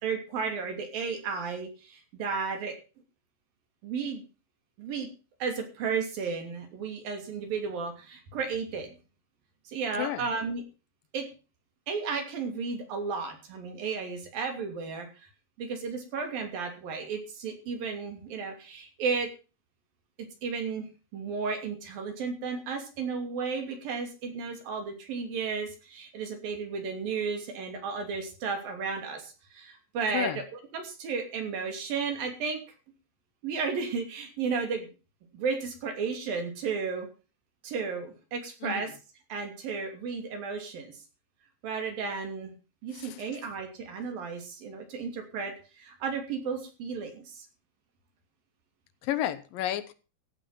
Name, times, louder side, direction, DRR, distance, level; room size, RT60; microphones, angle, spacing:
voice 1, 0.0-2.7 3.8-4.2 4.8-5.1 5.4-8.9 9.7-10.6 11.1-11.3 11.9-15.3 15.6-19.3 20.4-20.9 21.1-30.4 30.7-32.6 33.4-34.9 35.3-37.1 37.6-38.9 39.3-41.0 41.6-42.5 42.8-47.5, right 5 dB, 75° right, 4.7 m, -33 dB
voice 2, 9.9-10.3 30.1-30.4 38.6-38.9 42.9-43.2 49.0-49.9, left 12 dB, 75° left, 2.7 m, -32 dB
15.0 x 8.7 x 5.8 m
omnidirectional pair, 4.1 m